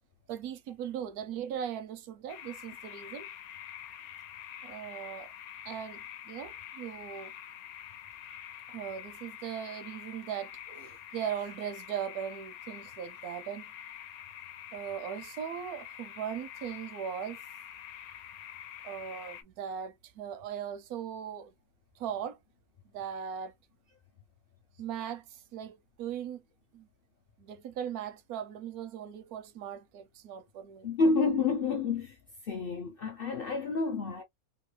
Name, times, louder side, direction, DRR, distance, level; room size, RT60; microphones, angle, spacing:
voice 1, 0.3-3.3 4.6-5.3 5.6-7.3 8.7-13.7 14.7-17.4 18.8-21.5 22.0-22.4 22.9-23.5 24.8-26.4 26.7-26.9 27.4-30.9, right 9 dB, 85° right, 1.1 m, -39 dB
sound 1, 2.3-19.4, left 10 dB, 80° left, 1.1 m, -46 dB
voice 2, 30.8-32.2 32.4-34.2, left 3 dB, 60° left, 0.6 m, -29 dB
3.1 x 2.3 x 3.2 m
omnidirectional pair, 1.5 m